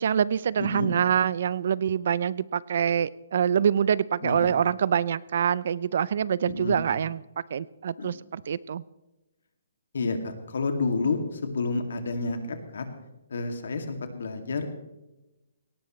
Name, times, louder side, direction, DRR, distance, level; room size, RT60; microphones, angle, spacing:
voice 1, 0.0-7.2 7.5-8.8, right 8 dB, 50° right, 21 dB, 0.4 m, -25 dB
voice 2, 0.6-0.9 4.2-4.6 6.5-6.8 8.0-8.1 9.9-12.9 13.3-14.7, left 3 dB, 70° left, 6 dB, 2.3 m, -30 dB
18.0 x 16.5 x 3.2 m, 1.0 s
hypercardioid pair, 170°, 0 cm